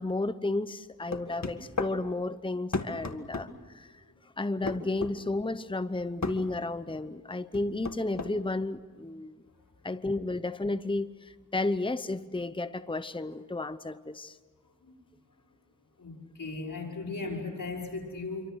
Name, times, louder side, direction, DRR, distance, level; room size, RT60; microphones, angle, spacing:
voice 1, 0.0-4.0 4.4-9.4 9.8-14.4, left 2 dB, 15° left, 12 dB, 0.9 m, -32 dB
sound 1, 1.1-2.0 2.7-3.5 4.7-5.2 6.2-6.4 7.5-8.3, left 3 dB, 55° left, 2.0 m, -33 dB
voice 2, 16.0-18.5, left 3 dB, 90° left, -1 dB, 5.1 m, -37 dB
27.5 x 24.5 x 6.4 m, 1.4 s
wide cardioid pair, 50°, 32 cm